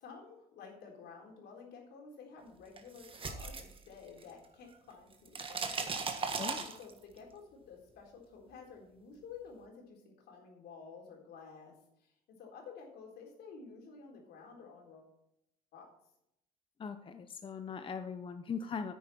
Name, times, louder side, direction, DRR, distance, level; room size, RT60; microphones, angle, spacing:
voice 1, 0.0-5.9 6.3-15.1 15.7-15.9, left 5 dB, 75° left, 0 dB, 3.9 m, -52 dB
sound 1, 2.8-4.5 4.7-7.2, right 4 dB, 30° right, 1.5 m, -38 dB
voice 2, 6.4-6.7 16.8-18.9, left 6 dB, 30° left, 8 dB, 0.7 m, -40 dB
9.9 x 9.3 x 4.3 m, 0.79 s
cardioid pair, 110°, 17 cm